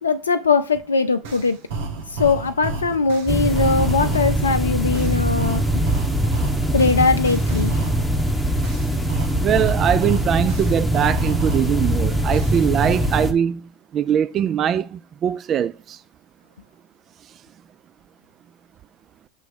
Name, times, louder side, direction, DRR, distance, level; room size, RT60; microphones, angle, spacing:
voice 1, 0.0-1.6 2.1-5.6 6.7-7.8, left 4 dB, 85° left, 0.3 m, -20 dB
sound 1, 0.7-0.8 1.2-4.5 4.9-8.2 8.6-11.9 12.3-13.2, right 3 dB, 65° right, 1.2 m, -31 dB
sound 2, 3.3-13.3, right 1 dB, ahead, 1.1 m, -22 dB
voice 2, 9.4-16.0, right 9 dB, 40° right, 0.3 m, -22 dB
6.8 x 3.2 x 4.9 m
hypercardioid pair, 80°, 0 cm